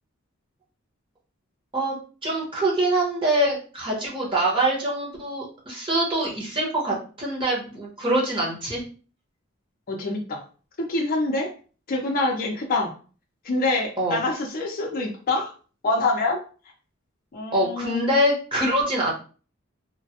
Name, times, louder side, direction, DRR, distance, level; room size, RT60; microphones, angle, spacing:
voice 1, 2.2-8.8 14.0-14.2 17.5-19.1, right 1 dB, 25° right, -4 dB, 1.0 m, -24 dB
voice 2, 9.9-10.4 10.8-11.5 11.9-12.9 13.4-15.5 15.8-16.4 17.3-18.0, left 2 dB, 45° left, 0 dB, 0.5 m, -25 dB
3.1 x 2.1 x 2.7 m, 0.38 s
head